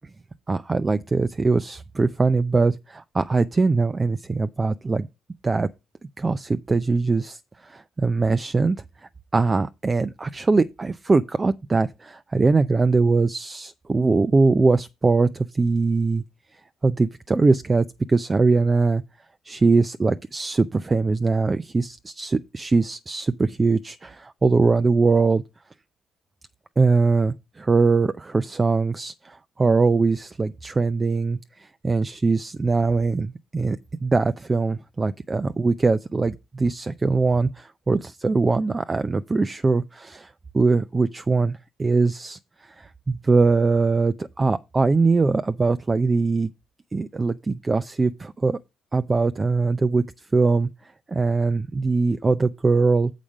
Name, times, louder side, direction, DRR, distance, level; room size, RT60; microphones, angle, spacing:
voice 1, 0.5-5.1 5.4-5.7 6.2-8.8 9.3-16.2 16.8-19.0 19.4-25.4 26.8-33.8 34.0-46.5 46.9-48.6 48.9-50.0 50.3-50.7 51.1-53.1, right 3 dB, 25° right, 0.5 m, -22 dB
7.1 x 5.0 x 6.4 m
cardioid pair, 90°, 0 cm